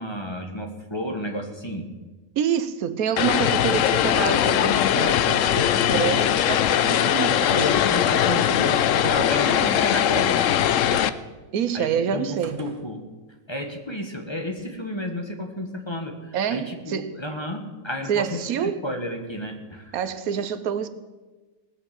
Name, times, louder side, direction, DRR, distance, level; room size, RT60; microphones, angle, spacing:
voice 1, 0.0-1.9 7.0-7.2 7.5-10.5 11.7-13.0 13.5-19.9, equal, 20° left, 1.4 m, -32 dB
voice 2, 2.4-7.7 11.5-12.6 16.3-17.2 18.1-18.8 19.9-20.9, right 8 dB, 90° right, 1.3 m, -27 dB
Vehicle, 3.2-11.1, left 10 dB, 70° left, 0.9 m, -21 dB
sound 1, 4.8-5.7 7.6-8.1 9.0-9.6 10.9-11.3 12.4-12.9, right 5 dB, 60° right, 1.4 m, -40 dB
19.0 x 7.1 x 7.2 m
omnidirectional pair, 1.5 m